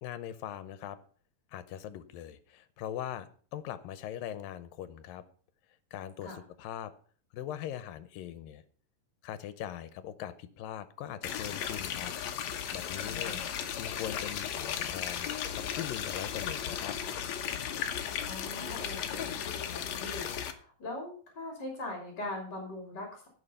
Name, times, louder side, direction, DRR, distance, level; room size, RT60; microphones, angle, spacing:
voice 1, 0.0-1.0 1.5-5.2 5.9-6.9 7.3-8.6 9.2-12.1 12.5-13.4 13.8-15.3 15.6-17.0, left 11 dB, 90° left, 13 dB, 2.5 m, -41 dB
sound 1, 11.2-20.5, left 9 dB, 65° left, 2.0 m, -35 dB
voice 2, 13.0-13.5 18.2-23.3, left 2 dB, 30° left, 0 dB, 3.5 m, -41 dB
16.5 x 6.7 x 5.6 m, 0.44 s
omnidirectional pair, 3.9 m